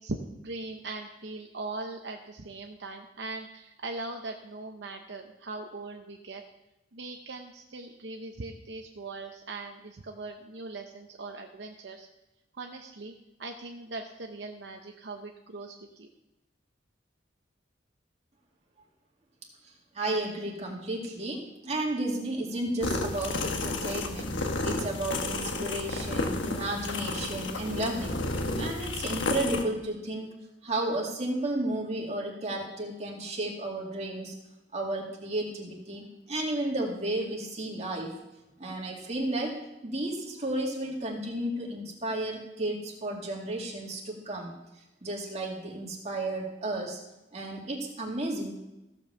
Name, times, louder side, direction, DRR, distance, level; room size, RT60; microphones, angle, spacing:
voice 1, 0.0-6.4 6.9-12.1 12.5-13.1 13.4-16.1, right 3 dB, 65° right, 3 dB, 0.8 m, -40 dB
voice 2, 19.9-28.2 28.6-30.3 30.6-34.3 34.7-38.1 38.6-44.6 45.0-47.0 47.3-48.6, right 1 dB, 35° right, -1 dB, 2.3 m, -33 dB
sound 1, 22.8-29.6, left 2 dB, 80° left, 1.2 m, -32 dB
15.0 x 5.4 x 6.9 m, 0.97 s
head